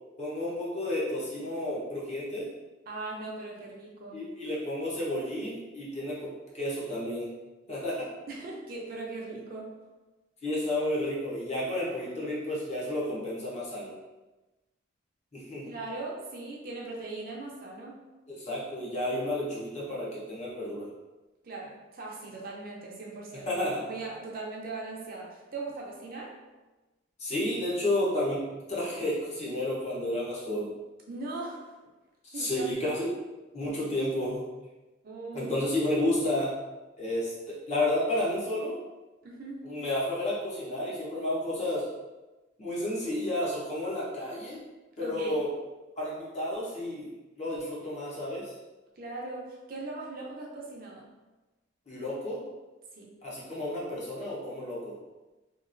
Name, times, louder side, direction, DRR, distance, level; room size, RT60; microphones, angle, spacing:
voice 1, 0.2-2.5 4.1-7.3 7.7-8.1 10.4-13.9 15.3-15.7 18.4-20.9 23.5-23.8 27.2-28.4 28.7-30.8 32.2-33.1 33.5-34.4 35.3-36.5 37.0-38.8 39.7-41.8 42.6-44.6 45.0-45.5 46.0-47.1 47.4-48.5 51.9-52.5 53.2-54.9, left 1 dB, 35° left, -7 dB, 0.9 m, -31 dB
voice 2, 2.9-4.2 8.3-9.7 15.6-18.0 21.4-26.3 31.1-31.7 32.3-32.9 35.0-35.5 39.2-39.6 45.0-45.4 48.9-51.1 52.9-53.1, right 3 dB, 50° right, -3 dB, 0.5 m, -39 dB
2.9 x 2.5 x 2.5 m, 1.1 s
head